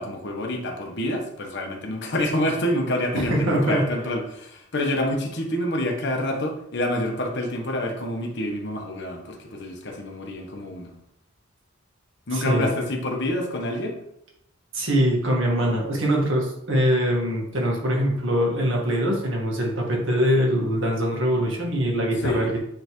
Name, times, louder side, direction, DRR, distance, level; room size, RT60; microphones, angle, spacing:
voice 1, 0.0-10.9 12.3-14.0 22.2-22.5, left 1 dB, 60° left, 2 dB, 1.1 m, -27 dB
voice 2, 3.1-3.8 12.3-12.7 14.7-22.6, equal, 65° right, -1 dB, 1.6 m, -23 dB
8.9 x 3.4 x 3.1 m, 0.78 s
head